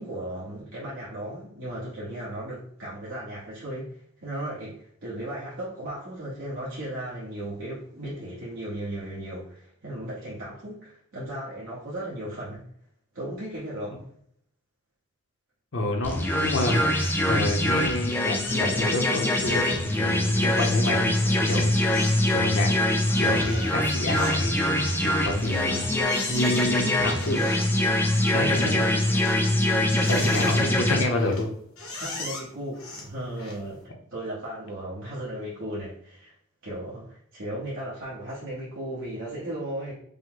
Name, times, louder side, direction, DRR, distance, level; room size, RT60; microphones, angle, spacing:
voice 1, 0.0-12.6 13.1-14.0 28.3-28.9 30.2-30.5 31.9-36.3 36.6-39.9, right 1 dB, 70° right, -8 dB, 1.2 m, -36 dB
voice 2, 15.7-22.0 22.3-22.7 23.2-25.8 26.3-27.5 28.3-28.7 30.1-31.5, left 1 dB, 65° left, 2 dB, 0.8 m, -28 dB
sound 1, 16.0-31.0, left 1 dB, 10° left, 0.4 m, -24 dB
sound 2, 18.4-19.1 19.4-19.7 20.0-33.8, left 3 dB, 90° left, 1.3 m, -41 dB
5.3 x 2.1 x 3.8 m, 0.66 s
head